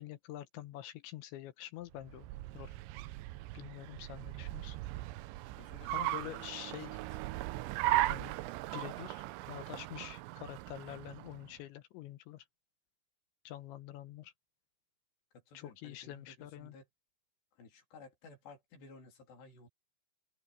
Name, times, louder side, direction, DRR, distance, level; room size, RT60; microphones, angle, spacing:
voice 1, 0.0-2.3 2.5-2.7 3.5-4.8 5.9-7.0 8.1-8.3 8.7-12.5 13.4-14.3 15.5-16.8, left 13 dB, 80° left, 3.2 m, -46 dB
Car, 1.9-11.5, right 16 dB, 85° right, 2.8 m, -38 dB
voice 2, 5.6-7.0 15.3-16.9 17.5-19.7, left 3 dB, 65° left, 5.6 m, -55 dB
open air
omnidirectional pair, 5.4 m